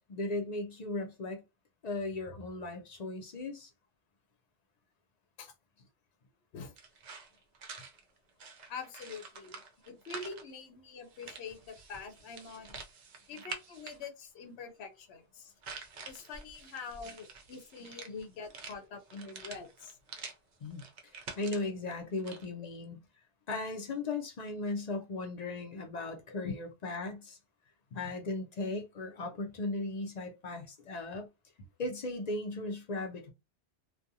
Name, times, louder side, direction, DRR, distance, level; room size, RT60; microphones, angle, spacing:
voice 1, 0.0-1.4 1.8-3.7 10.9-11.0 20.6-20.8 21.1-23.0 23.5-27.4 27.9-31.3 31.8-33.3, left 2 dB, 50° left, 0.5 m, -37 dB
sound 1, 6.8-10.4 11.0-14.0 15.6-20.4 20.6-22.5, right 4 dB, 50° right, 0.6 m, -47 dB
voice 2, 8.7-12.8 13.3-15.5 16.1-20.0 26.4-26.5 27.9-28.0, left 5 dB, 70° left, 0.9 m, -45 dB
2.4 x 2.2 x 2.7 m
omnidirectional pair, 1.2 m